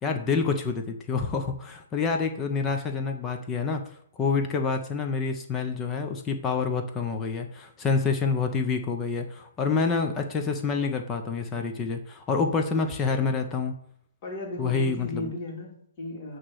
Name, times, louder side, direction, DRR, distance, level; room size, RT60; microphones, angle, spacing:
voice 1, 0.0-3.8 4.2-13.7 14.6-15.3, left 4 dB, 15° left, 5 dB, 0.7 m, -27 dB
voice 2, 12.7-13.4 14.2-16.4, left 2 dB, 35° left, -1 dB, 2.6 m, -36 dB
8.5 x 3.2 x 6.5 m, 0.67 s
hypercardioid pair, 155°, 0 cm